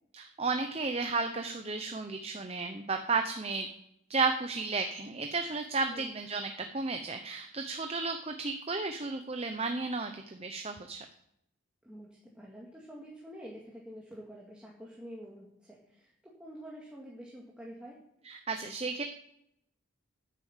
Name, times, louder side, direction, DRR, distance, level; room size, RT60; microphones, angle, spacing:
voice 1, 0.1-3.7 4.1-11.0 18.2-19.0, right 4 dB, 30° right, 6 dB, 0.7 m, -33 dB
voice 2, 11.8-18.0, equal, 5° right, -4 dB, 2.2 m, -48 dB
10.0 x 9.6 x 7.3 m, 0.77 s
head